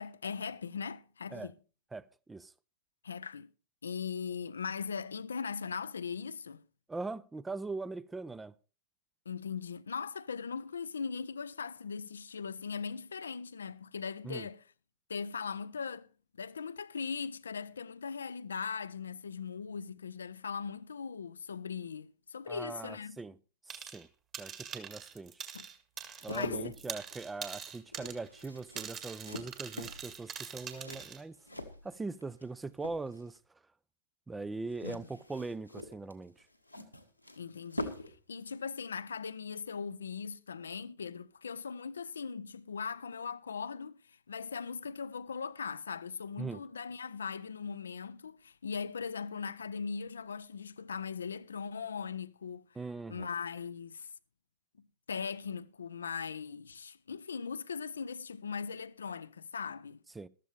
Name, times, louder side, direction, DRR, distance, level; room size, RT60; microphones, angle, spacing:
voice 1, 0.0-1.5 3.0-3.5 3.8-6.6 9.3-14.6 15.1-16.1 16.4-23.2 25.5-25.7 26.3-26.7 34.8-35.0 37.4-52.7 53.1-54.1 55.1-60.0, left 6 dB, 70° left, 0.5 m, -39 dB
voice 2, 1.9-2.5 6.9-8.5 14.2-14.5 22.5-23.4 23.7-24.1 24.4-25.4 26.2-31.4 31.8-33.4 34.3-36.5 46.4-46.6 52.8-53.3 60.1-60.3, right 3 dB, 10° right, 0.5 m, -41 dB
sound 1, 23.7-24.1 24.3-26.5 26.7-31.2, right 8 dB, 30° right, 1.9 m, -44 dB
sound 2, 26.0-32.5 32.7-33.4 34.7-38.2 38.5-38.6, left 1 dB, 90° left, 1.4 m, -44 dB
14.0 x 13.0 x 3.3 m
figure-of-eight pair, 90°, 0 cm